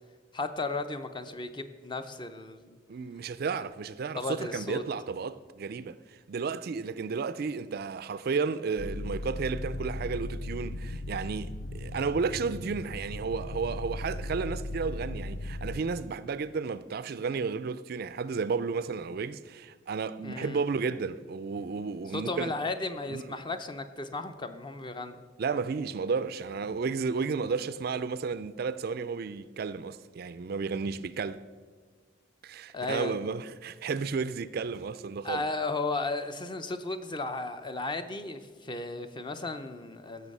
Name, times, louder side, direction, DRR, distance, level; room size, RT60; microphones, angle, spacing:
voice 1, 0.3-2.8 4.2-4.8 20.2-20.6 22.1-25.2 32.7-33.3 35.2-40.3, left 2 dB, 25° left, 0.6 m, -35 dB
voice 2, 2.9-6.0 6.3-11.5 11.7-22.5 23.1-23.2 25.4-31.4 32.4-35.4, right 5 dB, 50° right, 0.4 m, -32 dB
sound 1, 8.8-15.8, left 1 dB, 65° left, 0.6 m, -37 dB
16.5 x 6.6 x 5.4 m
head